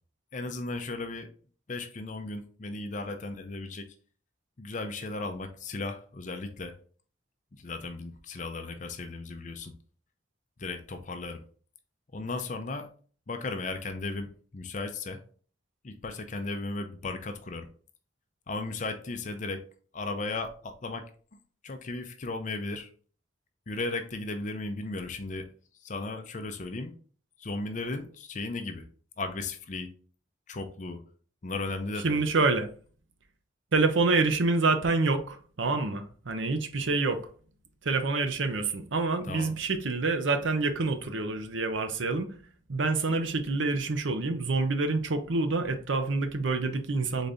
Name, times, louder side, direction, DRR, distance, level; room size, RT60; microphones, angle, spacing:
voice 1, 0.3-1.3 1.7-3.9 4.6-6.7 7.6-9.7 10.6-11.4 12.1-12.9 13.3-15.2 15.8-17.7 18.5-19.6 19.9-21.1 21.6-22.9 23.7-25.5 25.8-27.0 27.4-28.8 29.2-29.9 30.5-31.0 31.4-32.3 39.2-39.5, left 3 dB, 40° left, 0.5 m, -35 dB
voice 2, 32.0-32.7 33.7-37.2 37.8-42.3 42.7-47.3, right 3 dB, 80° right, 0.7 m, -27 dB
4.0 x 3.8 x 3.4 m
head